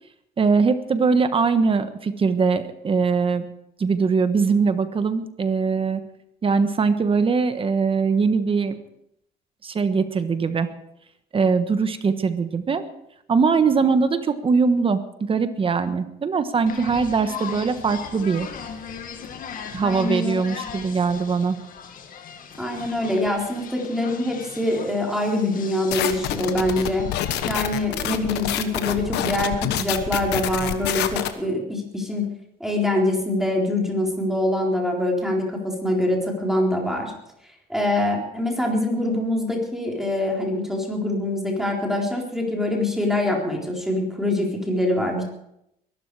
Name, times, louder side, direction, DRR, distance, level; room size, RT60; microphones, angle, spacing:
voice 1, 0.4-3.4 3.8-6.0 6.4-8.8 9.6-10.7 11.3-12.8 13.3-18.5 19.7-21.6, right 5 dB, 30° right, 10 dB, 1.3 m, -21 dB
sound 1, 16.7-27.8, left 7 dB, 55° left, 2.0 m, -38 dB
voice 2, 19.8-20.6 22.6-27.1 27.4-32.3 32.6-37.1 37.7-45.2, left 1 dB, ahead, -1 dB, 3.9 m, -24 dB
sound 2, 25.9-31.3, left 11 dB, 85° left, 1.3 m, -27 dB
22.0 x 12.0 x 4.8 m, 0.81 s
cardioid pair, 110°, 17 cm